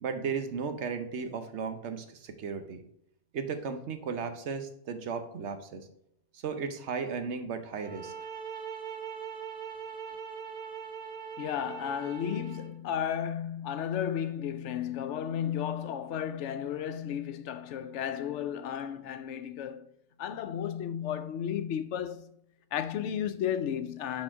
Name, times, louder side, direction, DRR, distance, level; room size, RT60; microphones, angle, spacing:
voice 1, 0.0-2.8 3.3-5.9 6.3-8.1, right 5 dB, 75° right, 1.1 m, -35 dB
sound 1, 7.8-12.7, right 7 dB, 40° right, 1.0 m, -41 dB
voice 2, 11.4-19.9 20.2-22.3 22.7-24.2, left 9 dB, 85° left, 0.9 m, -33 dB
6.1 x 4.3 x 4.5 m
omnidirectional pair, 1.2 m